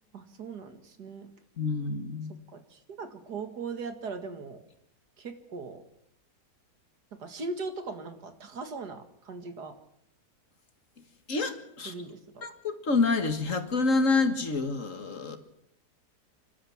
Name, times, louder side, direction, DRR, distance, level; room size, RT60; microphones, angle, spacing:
voice 1, 0.1-1.3 2.5-4.6 5.2-5.8 7.2-9.7 11.9-12.5, right 4 dB, 75° right, 8 dB, 2.5 m, -39 dB
voice 2, 1.6-2.3 11.3-11.9 12.4-15.4, left 3 dB, 50° left, 8 dB, 2.1 m, -27 dB
30.0 x 12.0 x 7.3 m, 0.76 s
omnidirectional pair, 1.7 m